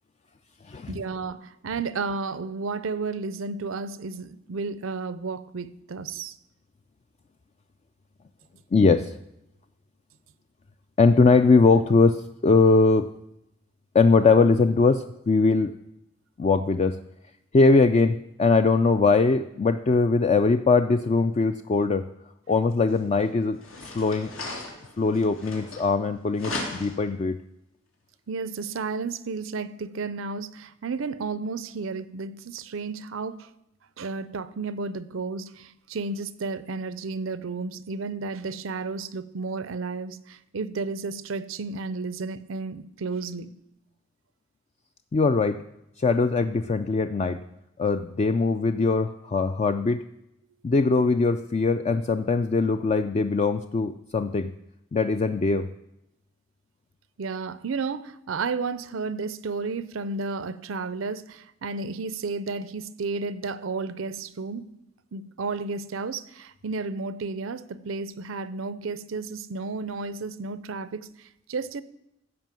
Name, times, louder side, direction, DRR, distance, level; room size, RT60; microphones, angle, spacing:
voice 1, 0.9-6.3 28.3-33.5 34.0-43.5 57.2-64.7 65.1-71.8, right 4 dB, 80° right, 0.6 m, -32 dB
voice 2, 8.7-9.1 11.0-13.1 13.9-15.7 16.4-17.0 17.5-22.1 22.5-23.6 23.9-24.3 25.0-27.4 45.1-45.6 46.0-47.4 47.8-50.0 50.6-54.5 54.9-55.7, left 4 dB, 35° left, 0.3 m, -21 dB
sound 1, 22.9-23.0 23.5-26.1 26.4-27.1, left 2 dB, 90° left, 2.9 m, -36 dB
14.5 x 5.3 x 7.5 m
head